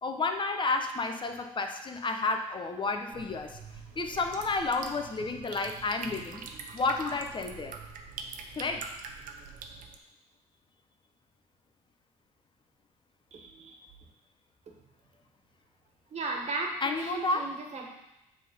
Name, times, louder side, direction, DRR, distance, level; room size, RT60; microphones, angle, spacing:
voice 1, 0.0-3.6 4.0-6.4 6.7-7.7 8.6-8.9 16.8-17.4, left 3 dB, 35° left, 5 dB, 0.9 m, -31 dB
sound 1, 3.1-10.0, right 5 dB, 70° right, 0.8 m, -44 dB
voice 2, 13.3-13.8 16.1-17.9, right 3 dB, 50° right, 1 dB, 1.7 m, -36 dB
7.4 x 3.7 x 5.4 m, 0.94 s
supercardioid pair, 70°, 14 cm